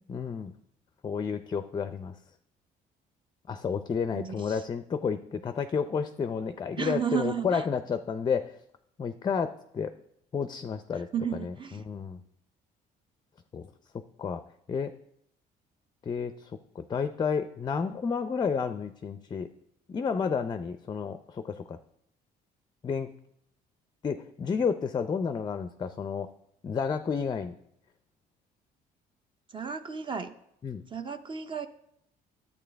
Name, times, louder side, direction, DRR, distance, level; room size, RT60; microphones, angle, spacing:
voice 1, 0.1-0.5 1.0-2.2 3.5-8.5 9.0-9.9 10.3-11.1 11.4-12.2 13.5-13.6 14.2-14.4 14.7-14.9 16.1-16.5 16.8-19.5 19.9-21.8 22.8-23.1 24.0-26.3 26.6-27.5 30.6-30.8, left 6 dB, 25° left, 10 dB, 0.4 m, -31 dB
voice 2, 4.1-4.6 6.8-7.6 11.1-11.8 29.5-30.3 30.9-31.7, right 7 dB, 30° right, 9 dB, 0.6 m, -33 dB
11.0 x 8.3 x 3.4 m, 0.75 s
cardioid pair, 110°, 17 cm